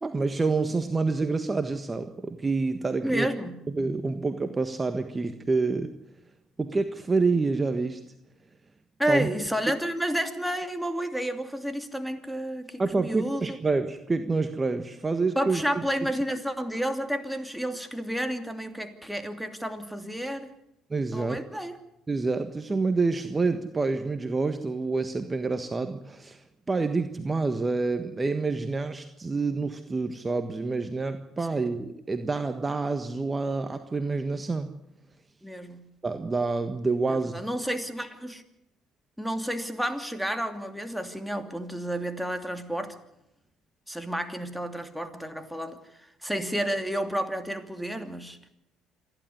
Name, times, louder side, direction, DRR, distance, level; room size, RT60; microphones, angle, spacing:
voice 1, 0.0-3.3 3.7-5.9 6.6-8.0 9.1-9.3 12.8-15.8 20.9-21.4 22.1-34.7 36.0-37.3, right 3 dB, 25° right, 8 dB, 1.5 m, -27 dB
voice 2, 3.0-3.6 9.0-13.6 15.4-20.5 21.1-21.8 31.5-31.7 35.4-35.9 37.1-38.4 39.2-43.0 43.9-48.5, equal, ahead, 6 dB, 2.8 m, -31 dB
27.5 x 12.0 x 9.7 m, 0.85 s
hypercardioid pair, 60°, 0 cm